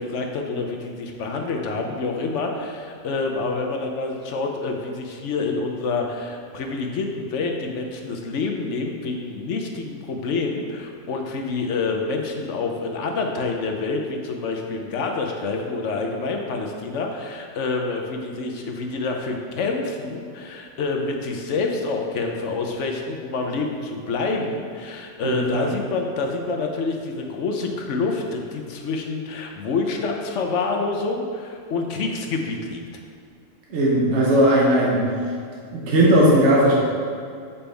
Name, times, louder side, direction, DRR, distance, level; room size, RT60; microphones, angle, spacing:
voice 1, 0.0-32.8, left 3 dB, 70° left, 2 dB, 1.1 m, -27 dB
voice 2, 25.2-25.7 33.7-35.0 35.7-36.8, right 1 dB, 65° right, -4 dB, 1.3 m, -17 dB
7.0 x 5.6 x 3.4 m, 2.3 s
omnidirectional pair, 1.3 m